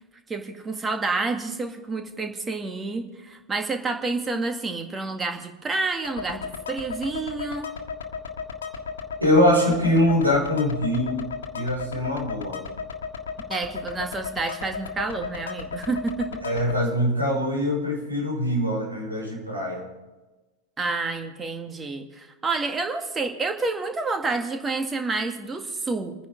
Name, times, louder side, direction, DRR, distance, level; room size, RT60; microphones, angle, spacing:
voice 1, 0.3-7.7 13.5-16.4 20.8-26.3, right 3 dB, 15° right, 5 dB, 1.9 m, -29 dB
sound 1, 6.0-16.7, left 6 dB, 65° left, 1.6 m, -35 dB
voice 2, 9.2-11.2 11.5-12.6 16.4-19.8, left 1 dB, 85° right, -4 dB, 6.3 m, -23 dB
29.5 x 10.5 x 3.7 m, 1.2 s
figure-of-eight pair, 90°, 0 cm